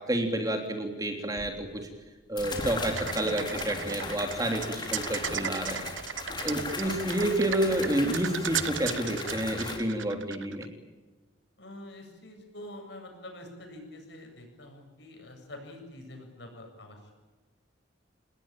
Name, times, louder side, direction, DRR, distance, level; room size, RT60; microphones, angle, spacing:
voice 1, 0.0-1.7 2.3-5.9 6.4-10.6, right 1 dB, 20° right, 4 dB, 3.3 m, -29 dB
sound 1, 1.4-1.5 2.4-9.8, left 2 dB, 25° left, 4.1 m, -37 dB
sound 2, 3.0-10.7, right 8 dB, 80° right, 1.2 m, -35 dB
voice 2, 11.6-17.1, left 1 dB, 60° left, 3 dB, 7.9 m, -46 dB
29.0 x 20.0 x 9.0 m, 1.3 s
head